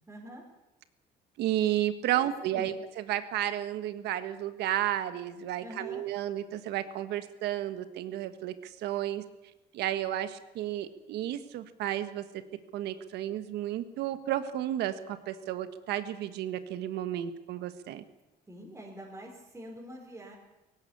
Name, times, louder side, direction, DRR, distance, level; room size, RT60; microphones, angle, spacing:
voice 1, 0.1-0.4 2.1-2.7 5.6-6.0 18.5-20.3, equal, 15° right, -3 dB, 4.5 m, -45 dB
voice 2, 1.4-9.2 9.7-12.4 12.7-18.0, right 12 dB, 80° right, 11 dB, 1.5 m, -32 dB
18.5 x 16.5 x 8.6 m, 0.98 s
cardioid pair, 110°, 17 cm